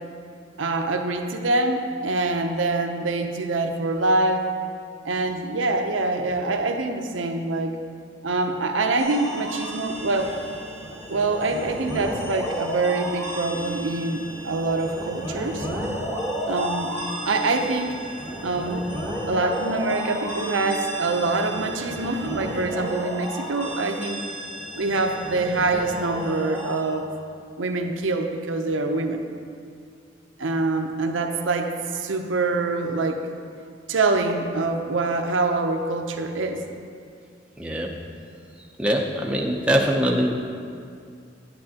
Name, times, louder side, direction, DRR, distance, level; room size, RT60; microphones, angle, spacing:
voice 1, 0.6-4.5 5.0-7.8 8.2-10.3 11.1-15.7 16.5-16.9 17.2-18.0 18.4-18.9 19.3-24.2 24.8-27.1 27.6-29.2 30.4-33.2 33.9-36.6, right 3 dB, 80° right, 4 dB, 0.6 m, -25 dB
sound 1, 9.0-26.8, equal, 10° left, 1.1 m, -33 dB
voice 2, 37.6-37.9 38.8-40.4, equal, 5° right, -1 dB, 0.5 m, -22 dB
10.0 x 8.7 x 2.8 m, 2.3 s
head